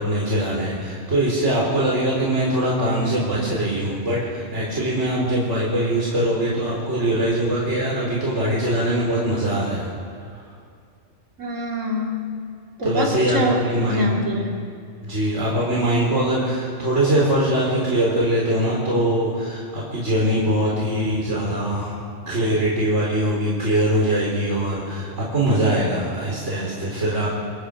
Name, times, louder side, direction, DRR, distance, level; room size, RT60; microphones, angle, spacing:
voice 1, 0.0-9.9 10.3-10.4 12.8-14.2 15.0-22.0 22.3-27.3, right 1 dB, 70° right, -5 dB, 4.1 m, -22 dB
voice 2, 11.4-12.2 12.8-13.6 13.9-14.7, equal, 90° right, -2 dB, 3.1 m, -25 dB
30.0 x 20.5 x 5.1 m, 2.3 s
omnidirectional pair, 1.3 m